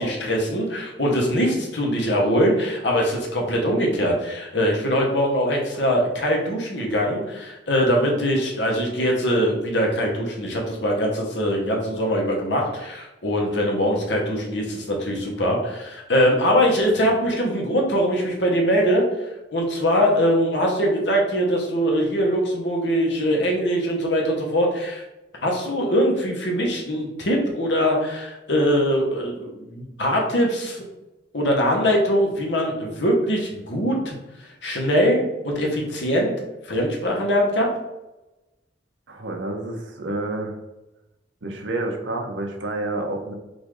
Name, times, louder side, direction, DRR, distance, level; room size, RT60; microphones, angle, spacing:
voice 1, 0.0-19.0 19.5-25.0 25.4-30.8 31.3-34.2 34.6-36.3 36.7-37.7, equal, 70° left, 0 dB, 1.1 m, -22 dB
voice 2, 39.1-40.6 41.4-43.3, right 2 dB, 80° right, 3 dB, 0.8 m, -29 dB
4.0 x 2.7 x 4.8 m, 0.99 s
head